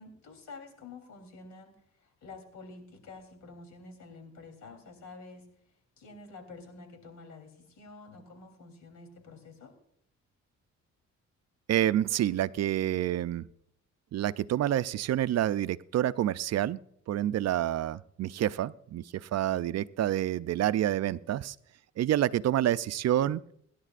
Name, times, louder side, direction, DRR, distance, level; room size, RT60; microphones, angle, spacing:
voice 1, 0.0-1.7 2.0-5.5 6.0-9.7, left 3 dB, 70° left, 5 dB, 3.5 m, -49 dB
voice 2, 11.7-13.4 14.1-16.8 17.1-21.6 22.0-23.4, right 12 dB, 60° right, 15 dB, 0.5 m, -28 dB
25.5 x 11.0 x 2.5 m, 0.69 s
cardioid pair, 90°, 30 cm